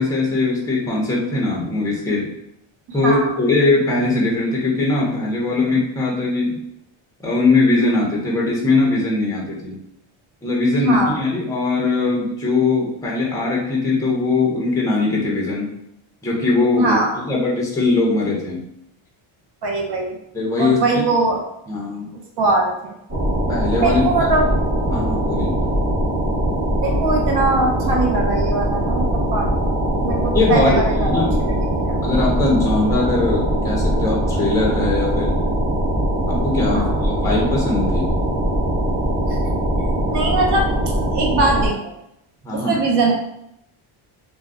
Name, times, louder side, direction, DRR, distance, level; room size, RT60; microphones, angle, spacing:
voice 1, 0.0-2.3 2.9-6.6 7.2-9.8 10.4-15.7 16.2-18.6 20.3-20.8 21.7-22.1 23.5-24.1 24.8-25.6 30.3-31.4 32.0-35.4 36.3-38.1 42.4-42.7, left 3 dB, 5° left, -3 dB, 0.5 m, -20 dB
voice 2, 10.8-11.2 16.7-17.2 19.6-20.2 20.6-21.4 22.4-23.0 23.8-24.5 26.8-29.5 30.0-32.0 36.7-36.9 39.3-39.4 40.1-40.7 41.1-41.9 42.5-43.1, right 3 dB, 55° right, 0 dB, 0.7 m, -21 dB
sound 1, 23.1-41.7, right 1 dB, 25° right, 0.9 m, -21 dB
2.3 x 2.1 x 3.5 m, 0.80 s
cardioid pair, 160°, 50 cm